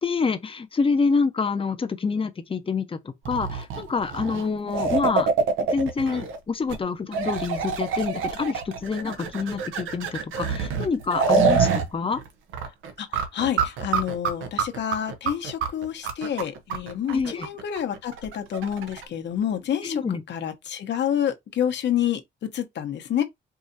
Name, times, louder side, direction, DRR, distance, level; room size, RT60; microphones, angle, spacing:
voice 1, 0.0-3.0 3.3-5.3 5.7-12.2 17.1-17.5 19.8-20.2, left 4 dB, 25° left, 0.8 m, -27 dB
sound 1, 3.3-6.4 6.7-6.8 7.1-11.9 12.1-12.3 12.5-19.0, right 5 dB, 85° right, 1.0 m, -26 dB
voice 2, 13.0-22.2 22.5-23.2, left 9 dB, 60° left, 1.1 m, -28 dB
4.8 x 2.7 x 2.7 m
cardioid pair, 90°, 20 cm